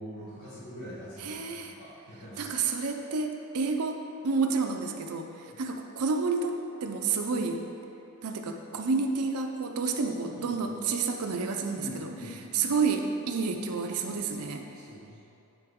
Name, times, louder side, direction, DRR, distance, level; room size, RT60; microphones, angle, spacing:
voice 1, 0.0-2.5 5.5-5.6 10.0-10.2 10.5-10.6 10.8-10.9 11.7-12.7 14.7-15.2, equal, 80° left, -12 dB, 1.5 m, -44 dB
voice 2, 1.2-1.7 2.4-4.0 4.2-7.6 8.2-12.1 12.5-14.7, right 4 dB, 90° right, 4 dB, 0.6 m, -30 dB
10.0 x 3.9 x 3.6 m, 2.7 s
head